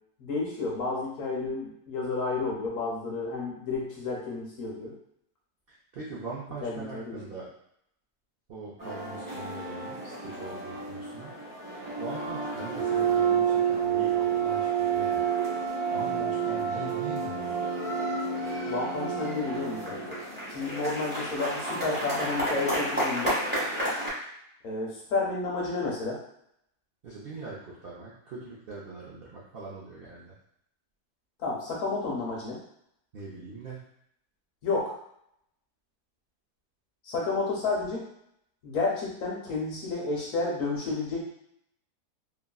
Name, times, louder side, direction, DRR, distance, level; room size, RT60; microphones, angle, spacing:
voice 1, 0.2-4.9 6.6-7.2 18.7-20.2 20.5-23.4 24.6-26.2 31.4-32.6 34.6-34.9 37.0-38.0 38.6-41.2, left 3 dB, 60° left, -3 dB, 1.0 m, -31 dB
voice 2, 5.9-7.5 8.5-11.3 12.0-15.3 15.9-17.5 27.0-30.3 33.1-33.8, right 3 dB, 65° right, -7 dB, 0.5 m, -41 dB
sound 1, 8.8-24.1, right 5 dB, 10° right, 0.8 m, -30 dB
2.9 x 2.4 x 2.3 m, 0.73 s
omnidirectional pair, 1.7 m